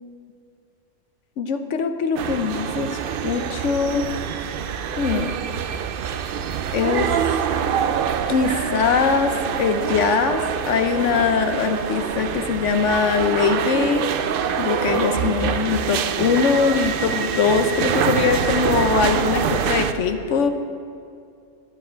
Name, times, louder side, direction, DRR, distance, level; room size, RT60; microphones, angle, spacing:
voice 1, 1.4-2.9 3.2-4.1 5.0-5.3 6.7-7.2 8.3-14.1 14.6-20.5, left 5 dB, 65° left, 8 dB, 0.9 m, -22 dB
sound 1, 2.2-19.9, right 7 dB, 80° right, 0.4 m, -25 dB
13.5 x 9.0 x 4.4 m, 2.4 s
omnidirectional pair, 1.5 m